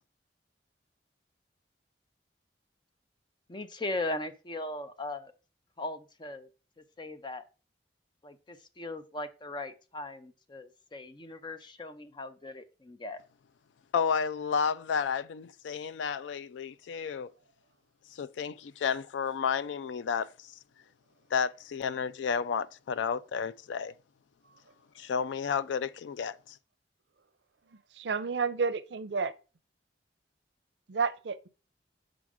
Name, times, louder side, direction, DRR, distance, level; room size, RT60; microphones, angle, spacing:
voice 1, 3.5-5.3 5.8-6.5 7.0-7.4 8.2-13.2, left 2 dB, 25° left, 0.5 m, -38 dB
voice 2, 13.9-17.3 18.1-20.5 21.3-23.9 25.0-26.6, left 6 dB, 80° left, 0.3 m, -31 dB
voice 3, 27.9-29.3 30.9-31.5, right 5 dB, 70° right, 0.5 m, -30 dB
6.2 x 5.0 x 3.6 m
head